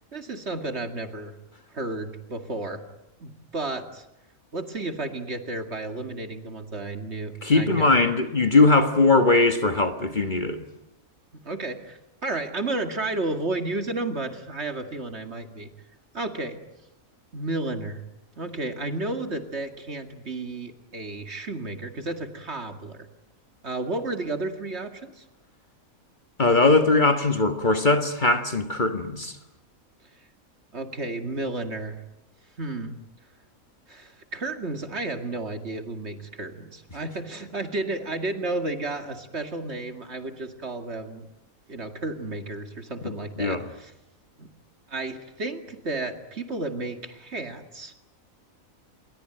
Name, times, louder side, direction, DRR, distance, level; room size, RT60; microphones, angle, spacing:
voice 1, 0.1-1.4 1.7-2.8 3.2-4.0 4.5-8.0 11.3-15.7 16.1-16.6 17.3-18.0 18.4-23.1 23.6-25.2 30.7-32.0 32.6-33.0 33.9-41.3 41.7-43.9 44.4-44.5 44.9-47.9, right 2 dB, 50° right, 2.5 m, -32 dB
voice 2, 7.4-10.6 26.4-29.4 43.0-43.1 43.4-43.7, left 3 dB, 35° left, 1.6 m, -20 dB
28.0 x 22.5 x 9.0 m
omnidirectional pair, 1.5 m